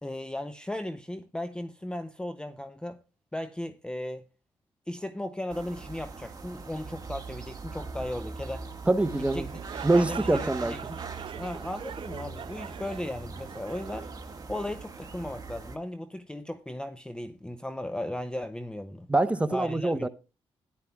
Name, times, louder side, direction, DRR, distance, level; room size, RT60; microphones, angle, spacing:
voice 1, 0.0-3.0 3.3-4.2 4.9-8.7 9.2-9.5 9.9-11.0 11.3-14.1 14.5-19.1 19.5-20.1, left 1 dB, 10° left, 0.6 m, -36 dB
sound 1, 5.5-15.8, right 4 dB, 35° right, 1.6 m, -41 dB
voice 2, 8.9-9.5 9.8-10.7 19.1-20.1, right 2 dB, 10° right, 0.9 m, -24 dB
sound 2, 9.3-15.0, right 8 dB, 50° right, 0.5 m, -42 dB
14.0 x 10.5 x 2.3 m
cardioid pair, 80°, 11 cm